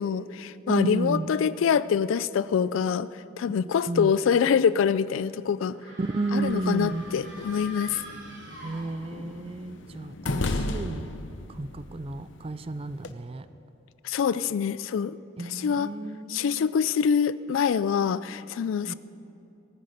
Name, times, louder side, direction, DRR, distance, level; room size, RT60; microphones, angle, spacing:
voice 1, 0.0-5.8 6.3-8.0 14.0-15.9 16.3-18.9, left 7 dB, 90° left, 17 dB, 0.3 m, -25 dB
voice 2, 0.7-1.3 3.9-4.1 6.0-7.0 8.5-11.1 11.5-13.5 15.4-16.7 18.8-18.9, right 2 dB, 30° right, 13 dB, 0.4 m, -32 dB
sound 1, 5.7-9.4, equal, 65° right, 2.8 m, -43 dB
sound 2, 6.4-13.1, left 2 dB, 75° left, 0.7 m, -36 dB
18.0 x 9.6 x 6.5 m, 2.7 s
head